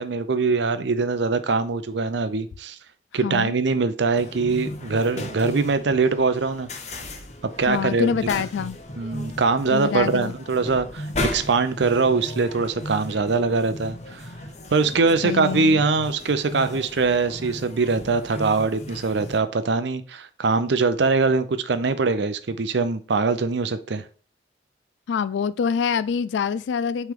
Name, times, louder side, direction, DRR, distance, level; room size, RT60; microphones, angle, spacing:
voice 1, 0.0-2.8 3.1-6.7 7.6-8.1 9.0-14.3 14.7-24.0, right 4 dB, 75° right, 0.6 m, -22 dB
voice 2, 3.2-3.5 7.7-8.8 9.7-10.3 15.2-15.8 25.1-27.1, left 6 dB, 80° left, 0.3 m, -25 dB
sound 1, 4.2-19.4, left 1 dB, 35° left, 0.8 m, -36 dB
9.0 x 3.2 x 3.7 m
head